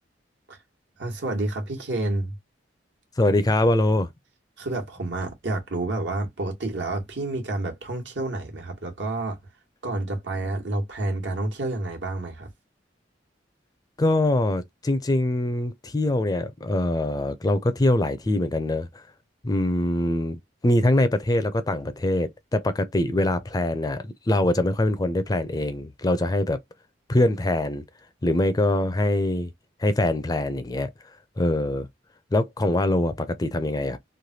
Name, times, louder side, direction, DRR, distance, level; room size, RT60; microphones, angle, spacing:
voice 1, 1.0-2.4 4.6-9.4 9.8-12.5, right 2 dB, 75° right, 1.3 m, -29 dB
voice 2, 3.2-4.1 14.0-18.9 19.4-26.6 27.1-27.8 28.2-29.5 29.8-30.9 31.4-31.9 32.3-34.0, left 1 dB, 20° left, 0.4 m, -23 dB
3.2 x 2.2 x 2.7 m
head